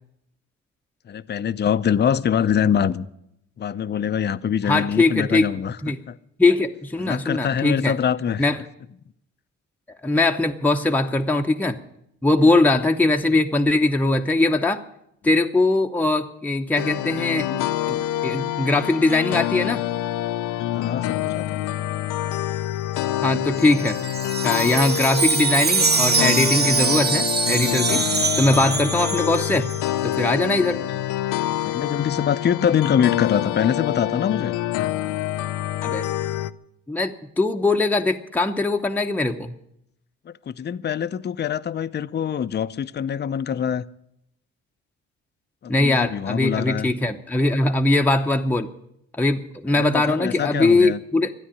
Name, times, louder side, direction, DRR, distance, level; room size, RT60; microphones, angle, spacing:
voice 1, 1.1-3.1 3.6-5.8 6.1-6.2 7.0-8.5 20.7-21.8 27.9-28.3 30.8-30.9 31.5-34.6 40.3-43.8 45.6-46.9 49.8-51.0, left 8 dB, 35° left, 0.6 m, -24 dB
voice 2, 4.7-5.5 5.8-6.0 6.4-7.9 8.4-8.6 10.0-11.8 12.2-14.8 15.2-19.8 23.2-24.0 24.4-28.0 28.4-29.7 30.0-30.8 35.8-36.1 36.9-39.5 45.7-48.7 49.1-51.3, left 2 dB, 5° left, 0.8 m, -21 dB
sound 1, 16.8-36.5, left 13 dB, 85° left, 0.6 m, -26 dB
Wind chime, 23.6-29.8, right 5 dB, 35° right, 0.9 m, -23 dB
13.0 x 9.9 x 9.9 m
cardioid pair, 90°, 30 cm